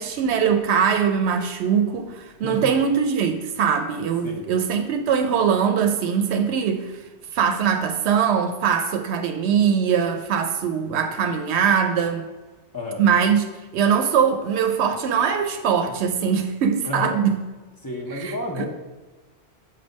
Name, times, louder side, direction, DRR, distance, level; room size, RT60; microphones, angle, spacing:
voice 1, 0.0-6.9 7.3-12.3 13.0-13.5 13.7-17.4 18.1-18.7, right 7 dB, 90° right, 5 dB, 0.9 m, -22 dB
voice 2, 2.4-2.7 4.2-4.4 12.7-13.0 16.8-17.1 17.8-18.7, left 2 dB, 20° left, -1 dB, 0.9 m, -30 dB
7.0 x 3.4 x 5.2 m, 1.2 s
omnidirectional pair, 1.1 m